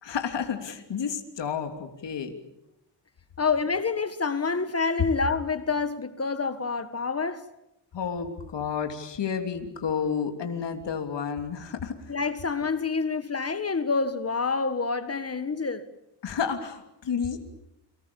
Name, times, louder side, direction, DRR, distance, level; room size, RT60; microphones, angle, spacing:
voice 1, 0.0-2.4 7.9-12.0 16.2-17.4, left 6 dB, 75° left, 3.2 m, -31 dB
voice 2, 3.4-7.5 12.1-15.8, left 4 dB, 35° left, 1.5 m, -27 dB
30.0 x 24.5 x 7.1 m
wide cardioid pair, 105°, 43 cm